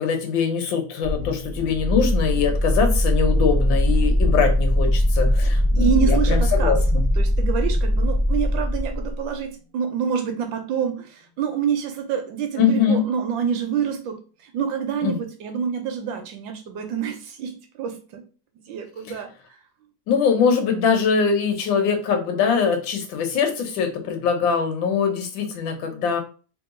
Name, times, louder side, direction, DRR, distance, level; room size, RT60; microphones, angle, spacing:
voice 1, 0.0-7.0 12.6-13.0 15.0-15.2 19.0-19.1 20.1-26.2, left 6 dB, 85° left, 5 dB, 1.6 m, -22 dB
sound 1, 1.0-9.2, equal, 5° left, 1.0 m, -20 dB
voice 2, 5.8-6.8 7.2-18.2 18.7-19.3, right 7 dB, 90° right, 5 dB, 1.5 m, -27 dB
3.3 x 3.0 x 3.7 m, 0.37 s
omnidirectional pair, 2.0 m